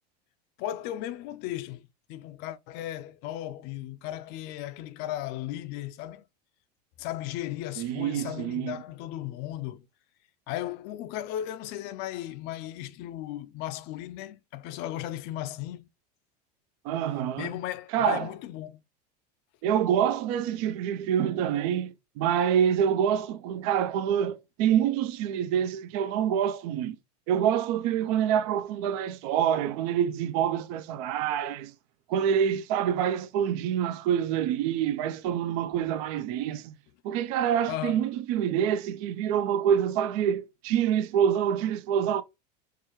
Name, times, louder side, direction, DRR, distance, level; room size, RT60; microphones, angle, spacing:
voice 1, 0.6-6.2 7.0-9.8 10.5-15.8 17.4-18.8 37.7-38.0, left 13 dB, 50° left, 0.4 m, -36 dB
voice 2, 7.8-8.8 16.8-17.5 17.9-18.3 19.6-27.0 27.3-31.7 32.1-36.7 37.0-42.2, right 9 dB, 60° right, 0.4 m, -26 dB
4.6 x 2.3 x 2.9 m
supercardioid pair, 110°, 21 cm